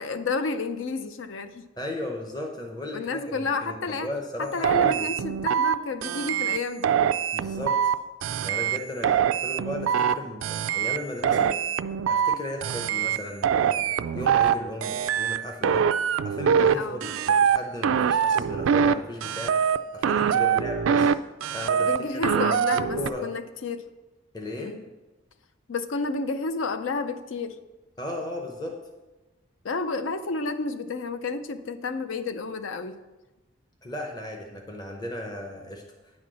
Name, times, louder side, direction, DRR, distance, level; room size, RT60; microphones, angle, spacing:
voice 1, 0.0-1.7 2.9-4.1 4.4-7.2 16.7-17.1 20.4-20.7 21.8-23.8 24.6-24.8 25.7-27.6 29.6-33.0, left 4 dB, 70° left, 10 dB, 0.6 m, -31 dB
voice 2, 1.8-5.1 7.3-7.8 8.4-11.5 12.1-15.9 16.2-19.6 19.9-21.1 21.5-21.9 22.3-23.3 24.3-24.7 28.0-28.8 33.8-35.8, left 1 dB, 20° left, 2 dB, 0.8 m, -35 dB
sound 1, 4.6-5.7 6.0-6.6 6.8-7.9 8.2-8.8 9.0-10.1 10.4-11.0 11.2-12.3 12.6-13.2 13.4-14.5 14.8-15.4 15.6-16.7 17.0-17.6 17.8-18.9 19.2-19.8 20.0-21.1 21.4-22.0 22.2-23.1, right 8 dB, 85° right, 0.3 m, -23 dB
9.3 x 4.3 x 6.2 m, 1.1 s
head